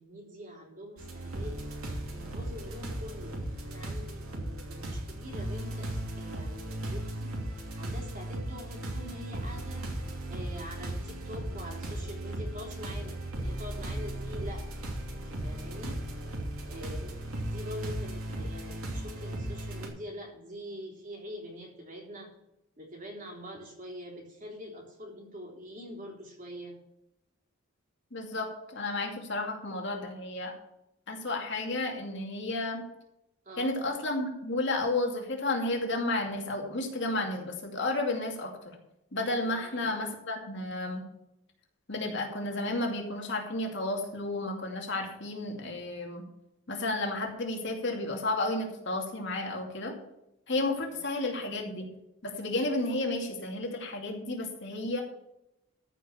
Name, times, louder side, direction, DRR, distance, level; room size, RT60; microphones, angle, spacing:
voice 1, 0.0-1.6 2.1-7.3 7.7-9.8 10.3-14.7 15.1-16.0 16.6-17.1 17.4-22.3 22.8-26.8 33.4-33.8 39.5-39.9, equal, 35° right, -1 dB, 3.4 m, -44 dB
sound 1, 1.0-19.9, right 1 dB, 85° right, 2.9 m, -37 dB
voice 2, 28.1-30.5 31.1-32.8 33.6-38.8 39.1-41.0 41.9-46.2 46.7-49.9 50.5-51.9 52.2-55.0, left 2 dB, 55° left, 1 dB, 2.5 m, -32 dB
14.0 x 5.6 x 7.2 m, 0.85 s
head